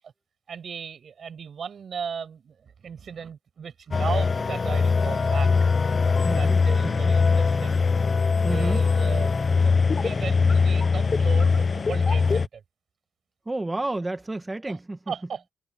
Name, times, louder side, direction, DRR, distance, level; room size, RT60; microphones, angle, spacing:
voice 1, 0.5-5.9 6.2-7.8 8.5-12.6 14.7-14.8 15.1-15.5, right 7 dB, 50° right, 7.0 m, -36 dB
sound 1, 3.9-12.5, left 4 dB, 35° left, 0.7 m, -21 dB
voice 2, 6.2-7.1 8.4-8.8 13.5-15.0, right 2 dB, 15° right, 1.8 m, -31 dB
cardioid pair, 90°, 0 cm